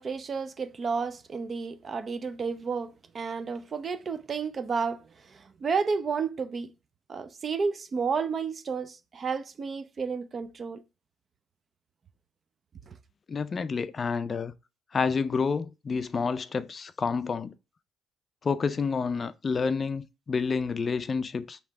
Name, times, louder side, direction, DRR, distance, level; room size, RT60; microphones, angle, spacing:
voice 1, 0.0-6.7 7.1-10.8 12.9-13.0, right 5 dB, 45° right, 0.5 m, -31 dB
voice 2, 13.3-14.5 14.9-17.5 18.4-21.6, left 5 dB, 40° left, 0.4 m, -29 dB
3.2 x 2.9 x 4.5 m
supercardioid pair, 75°, 0 cm